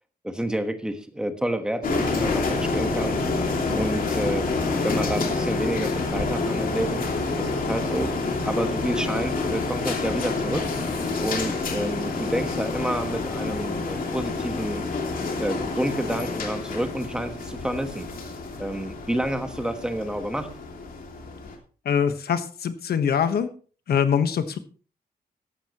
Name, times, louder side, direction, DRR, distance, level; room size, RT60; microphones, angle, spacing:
voice 1, 0.2-3.2 3.8-4.4 4.8-7.1 7.4-8.1 8.4-10.6 11.2-14.8 15.4-18.1 18.6-20.5, right 1 dB, 5° right, 7 dB, 1.3 m, -29 dB
sound 1, 1.8-21.6, left 3 dB, 60° left, 2.6 m, -28 dB
voice 2, 21.8-23.5 23.9-24.6, left 7 dB, 75° left, 9 dB, 1.4 m, -23 dB
14.5 x 12.0 x 3.1 m, 0.39 s
wide cardioid pair, 170°, 16 cm